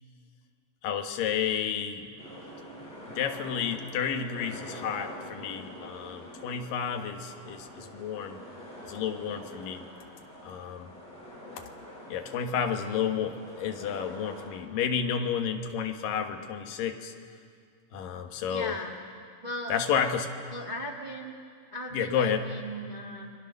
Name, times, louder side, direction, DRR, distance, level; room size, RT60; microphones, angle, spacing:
voice 1, 0.8-2.1 3.1-8.4 8.8-9.9 10.4-10.9 11.6-11.7 12.1-17.1 17.9-18.8 19.7-20.3 21.9-22.5, left 7 dB, 75° left, 5 dB, 3.0 m, -31 dB
sound 1, 2.2-14.5, equal, 45° left, 8.7 m, -45 dB
voice 2, 18.5-18.9 19.4-19.7 20.5-21.4 21.7-23.3, equal, 75° right, 0 dB, 0.4 m, -37 dB
30.0 x 23.0 x 6.5 m, 2.2 s
omnidirectional pair, 4.0 m